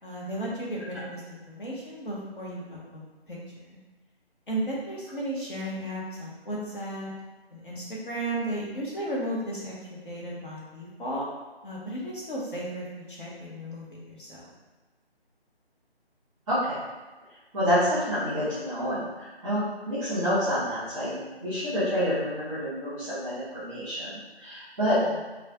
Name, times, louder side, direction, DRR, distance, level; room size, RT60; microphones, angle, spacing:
voice 1, 0.0-3.4 3.7-3.8 4.5-7.1 7.5-9.7 10.0-11.3 11.6-14.5 24.8-25.2, right 1 dB, 55° left, -5 dB, 1.1 m, -34 dB
voice 2, 16.5-16.8 17.5-19.0 19.4-19.6 19.9-25.0, equal, 10° right, -15 dB, 1.0 m, -28 dB
4.2 x 2.4 x 2.3 m, 1.2 s
figure-of-eight pair, 155°, 32 cm